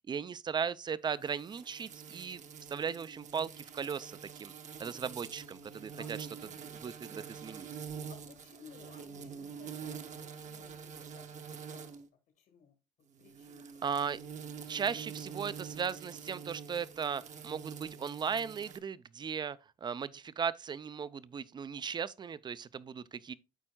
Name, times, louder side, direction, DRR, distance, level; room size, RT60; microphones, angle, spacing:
voice 1, 0.1-2.4 2.7-4.5 4.8-6.2 6.7-7.7 13.8-14.2 14.7-23.3, right 6 dB, 25° right, 0.4 m, -37 dB
sound 1, 1.2-12.1 13.1-18.8, right 7 dB, 45° right, 0.8 m, -46 dB
voice 2, 8.1-11.9 12.4-12.8 13.2-14.0, left 7 dB, 70° left, 1.8 m, -58 dB
13.0 x 4.4 x 2.2 m
cardioid pair, 110°, 17 cm